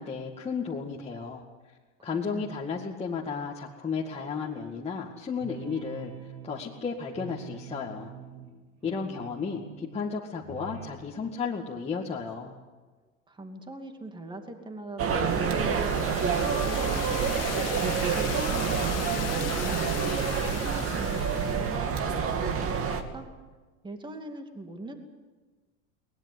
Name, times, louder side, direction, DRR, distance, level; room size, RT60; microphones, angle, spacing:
voice 1, 0.0-1.4 2.0-6.1 6.4-8.1 8.8-12.6, left 5 dB, 15° left, -3 dB, 2.1 m, -33 dB
voice 2, 2.3-2.8 13.3-17.7 18.1-23.3 23.8-25.0, right 2 dB, 10° right, 5 dB, 2.6 m, -42 dB
sound 1, 4.1-4.9 5.3-10.0 10.4-10.9, right 5 dB, 55° right, 6.8 m, -45 dB
sound 2, 15.0-23.0, right 6 dB, 35° right, 2.5 m, -27 dB
sound 3, 15.3-21.8, left 16 dB, 40° left, 1.0 m, -39 dB
22.5 x 20.0 x 8.1 m, 1.3 s
supercardioid pair, 125°, 38 cm